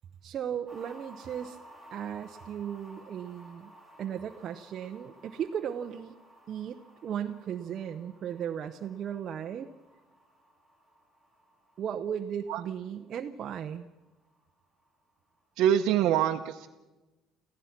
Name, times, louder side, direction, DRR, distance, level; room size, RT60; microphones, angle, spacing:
voice 1, 0.2-1.6 1.9-3.7 4.0-6.1 6.5-6.8 7.0-9.7 11.8-13.9, right 9 dB, 45° right, 4 dB, 0.8 m, -36 dB
sound 1, 0.7-15.1 15.4-15.5, right 1 dB, 10° left, 7.5 m, -56 dB
voice 2, 15.6-16.7, right 10 dB, 70° right, 3 dB, 0.9 m, -25 dB
28.0 x 15.5 x 6.0 m, 1.1 s
cardioid pair, 145°, 0 cm